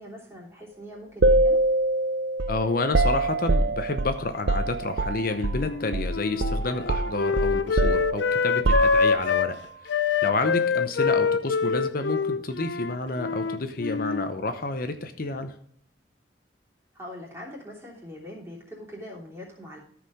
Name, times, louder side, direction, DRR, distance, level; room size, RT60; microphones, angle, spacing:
voice 1, 0.0-1.6 16.9-19.8, left 1 dB, 15° right, -3 dB, 3.1 m, -42 dB
sound 1, 1.2-5.7 5.9-6.1 6.4-9.4, right 2 dB, 80° right, 0.6 m, -24 dB
voice 2, 2.5-9.6 9.8-10.0 10.2-15.5, left 2 dB, 55° left, 8 dB, 0.8 m, -30 dB
Wind instrument woodwind instrument, 5.5-9.5 9.9-14.3, left 5 dB, 75° left, 0.5 m, -25 dB
14.0 x 4.9 x 5.0 m, 0.65 s
head